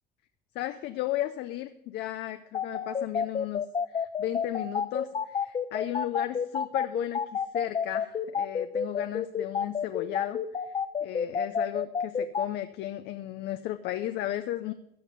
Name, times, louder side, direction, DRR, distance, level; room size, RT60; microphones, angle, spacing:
voice 1, 0.5-10.4 10.7-10.8 11.0-14.7, left 14 dB, 80° left, 9 dB, 0.6 m, -35 dB
sound 1, 2.5-12.5, left 6 dB, 35° left, 0.7 m, -29 dB
14.5 x 7.0 x 5.4 m, 0.80 s
cardioid pair, 110°, 17 cm